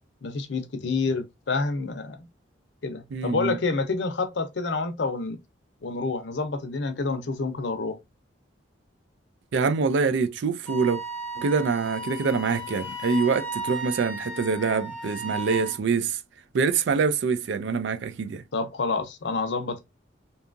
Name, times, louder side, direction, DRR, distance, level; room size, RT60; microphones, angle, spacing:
voice 1, 0.2-2.3 2.8-5.4 5.8-8.0 18.5-19.8, left 3 dB, 65° left, 0.5 m, -28 dB
voice 2, 3.1-3.6 9.5-11.0 11.4-16.2 16.5-18.4, right 5 dB, 70° right, 0.3 m, -25 dB
Wind instrument woodwind instrument, 10.7-15.8, right 1 dB, 5° left, 0.5 m, -35 dB
2.7 x 2.3 x 2.5 m
head